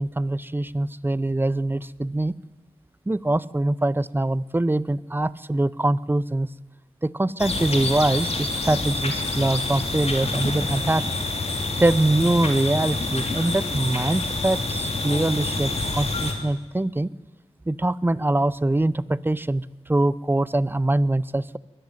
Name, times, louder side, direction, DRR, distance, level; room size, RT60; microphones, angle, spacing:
voice 1, 0.0-2.3 3.1-6.5 7.0-11.0 11.8-17.1 17.7-21.6, right 2 dB, 20° right, 19 dB, 0.7 m, -23 dB
sound 1, 7.4-16.3, left 2 dB, 65° left, 3.2 m, -27 dB
22.5 x 14.5 x 9.4 m, 1.1 s
wide cardioid pair, 60°, 11 cm